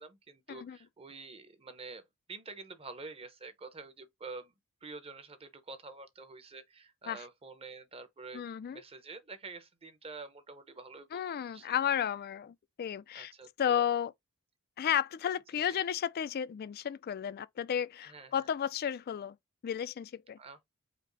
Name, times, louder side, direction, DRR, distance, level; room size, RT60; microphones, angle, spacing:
voice 1, 0.0-2.0 2.3-4.5 4.8-8.4 8.7-11.7 13.1-13.9 15.5-15.8 18.0-18.4 20.4-20.6, right 3 dB, 30° right, 0.8 m, -48 dB
voice 2, 8.3-8.8 11.1-13.3 13.6-14.1 14.8-19.4 19.6-20.4, left 9 dB, 45° left, 0.3 m, -33 dB
5.1 x 2.1 x 3.9 m
head